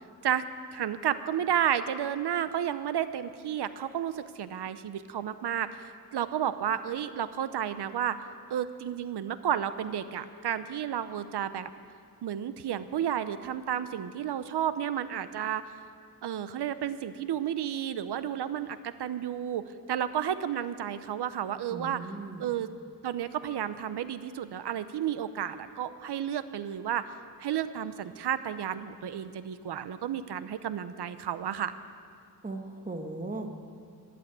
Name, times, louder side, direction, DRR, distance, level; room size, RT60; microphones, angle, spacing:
voice 1, 0.7-5.7 6.1-8.2 8.5-11.7 12.2-15.7 16.2-19.6 19.9-22.0 22.4-22.7 23.0-27.1 27.4-31.7, right 10 dB, 90° right, 12 dB, 0.8 m, -32 dB
voice 2, 21.7-22.5 32.4-33.5, right 2 dB, 20° right, 4 dB, 1.4 m, -38 dB
20.5 x 8.5 x 8.1 m, 2.3 s
wide cardioid pair, 135°, 39 cm